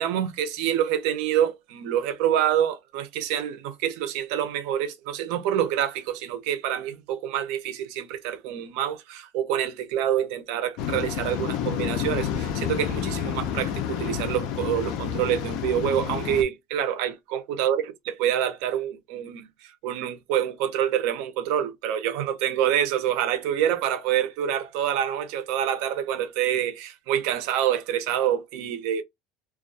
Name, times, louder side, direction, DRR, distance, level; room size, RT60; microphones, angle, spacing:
voice 1, 0.0-29.0, right 10 dB, 70° right, 0.5 m, -27 dB
Waves surf, 10.8-16.4, left 8 dB, 60° left, 0.4 m, -29 dB
2.2 x 2.1 x 2.6 m
cardioid pair, 140°, 0 cm